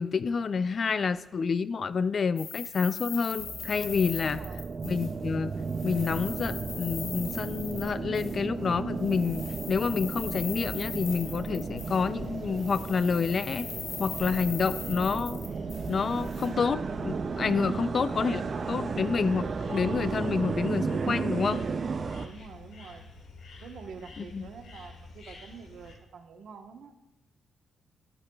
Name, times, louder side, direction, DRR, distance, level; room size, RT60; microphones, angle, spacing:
voice 1, 0.0-4.4 4.8-5.5 5.8-13.7 14.0-15.4 15.9-18.4 18.7-21.6 24.2-24.5, left 5 dB, 40° left, 14 dB, 0.3 m, -28 dB
sound 1, 2.4-5.3 5.6-8.4 9.0-12.2 12.5-16.5, left 6 dB, 65° left, 1.4 m, -41 dB
sound 2, 3.3-22.3, right 5 dB, 35° right, 0.4 m, -34 dB
voice 2, 4.3-4.6 22.2-23.0 23.6-27.0, right 6 dB, 70° right, 5 dB, 1.0 m, -47 dB
sound 3, 10.0-25.9, left 3 dB, 85° left, 1.9 m, -51 dB
14.0 x 12.0 x 2.3 m, 0.88 s
wide cardioid pair, 155°, 0 cm